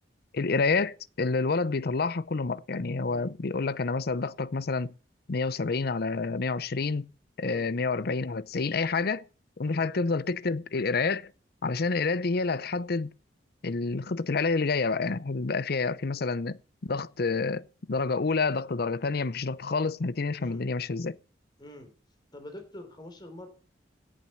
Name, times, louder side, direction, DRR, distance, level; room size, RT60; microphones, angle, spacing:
voice 1, 0.3-4.9 5.3-7.1 7.4-9.2 9.6-11.3 11.6-13.1 13.6-21.2, left 4 dB, 60° left, 0.7 m, -28 dB
voice 2, 21.6-21.9 22.3-23.5, left 1 dB, 25° left, 3.4 m, -45 dB
17.0 x 7.4 x 7.0 m
head